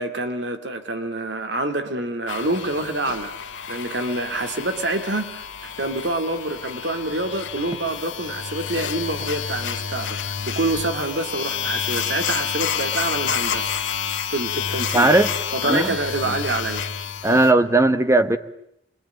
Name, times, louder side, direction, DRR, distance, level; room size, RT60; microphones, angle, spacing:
voice 1, 0.0-3.3 3.7-14.0 14.3-15.1 15.5-16.9, right 2 dB, 70° right, 7 dB, 2.3 m, -27 dB
sound 1, 2.3-17.5, left 7 dB, 90° left, 2.2 m, -29 dB
voice 2, 14.9-15.3 15.6-15.9 17.2-18.4, right 2 dB, 15° right, 10 dB, 1.2 m, -17 dB
29.0 x 22.5 x 9.0 m, 0.77 s
head